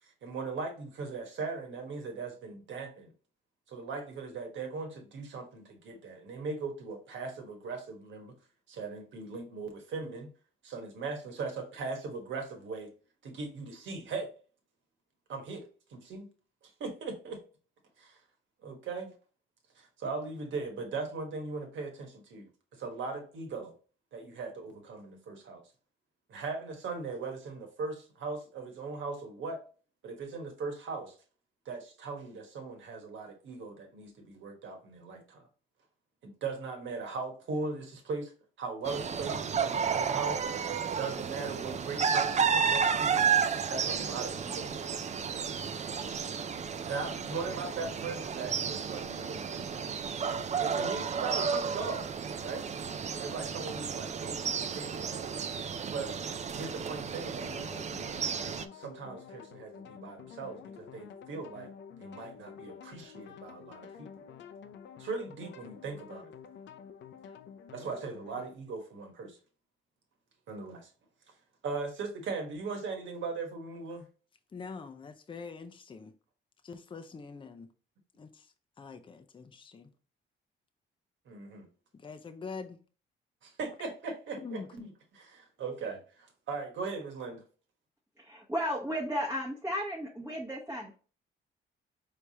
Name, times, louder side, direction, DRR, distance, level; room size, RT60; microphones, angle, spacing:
voice 1, 0.0-3.1 3.7-8.3 8.7-10.3 10.6-12.9 13.2-14.3 15.3-15.6 15.9-16.3 16.8-17.4 18.0-18.2 18.6-19.1 19.7-22.4 22.7-23.7 24.1-25.6 26.3-29.6 30.0-31.2 31.6-35.4 36.2-38.3 38.6-40.4 41.0-43.2 43.7-45.5 46.9-49.9 50.6-52.1 52.4-52.7 53.2-55.3 55.9-56.1 56.5-57.6 58.7-61.7 62.0-64.2 65.0-66.3 67.7-69.4 70.5-70.9 71.6-74.1 81.3-81.7 83.4-87.4, right 4 dB, 70° right, 1.4 m, -39 dB
sound 1, 38.8-58.6, right 6 dB, 35° right, 0.4 m, -32 dB
sound 2, 57.5-68.6, left 7 dB, 65° left, 0.6 m, -49 dB
voice 2, 74.5-76.1 76.6-77.7 78.1-79.9 81.9-82.8 84.4-84.7, left 5 dB, 25° left, 0.5 m, -44 dB
voice 3, 88.2-90.9, equal, 10° right, 0.9 m, -34 dB
4.7 x 3.4 x 2.8 m
cardioid pair, 90°, 20 cm